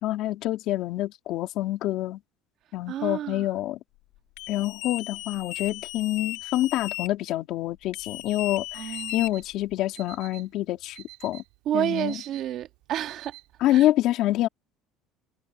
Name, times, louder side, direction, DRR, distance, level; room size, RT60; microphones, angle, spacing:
voice 1, 0.0-2.2 2.7-3.8 4.5-11.4 11.7-12.2 13.6-14.5, left 15 dB, 60° left, 3.3 m, -27 dB
voice 2, 2.9-3.5 8.7-9.2 11.7-13.4 13.7-13.9, right 11 dB, 50° right, 2.1 m, -30 dB
sound 1, 4.4-7.1 7.9-9.7, left 21 dB, 80° left, 5.3 m, -36 dB
Alarm, 8.7-13.7, right 25 dB, 90° right, 5.9 m, -49 dB
cardioid pair, 155°, 0 cm